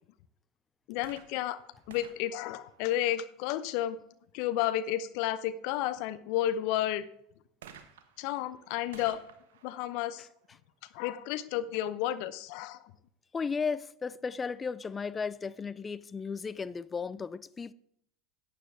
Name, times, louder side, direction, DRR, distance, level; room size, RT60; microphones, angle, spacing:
voice 1, 0.9-1.6 1.9-4.0 4.3-7.0 8.2-9.2 9.6-10.3 10.9-12.9, left 12 dB, 60° left, 0.7 m, -32 dB
sound 1, 0.9-3.5 7.6-11.3 12.1-12.2, right 8 dB, 75° right, 1.1 m, -56 dB
voice 2, 13.3-17.7, left 5 dB, 25° left, 0.5 m, -35 dB
11.5 x 9.2 x 3.5 m
hypercardioid pair, 80°, 0 cm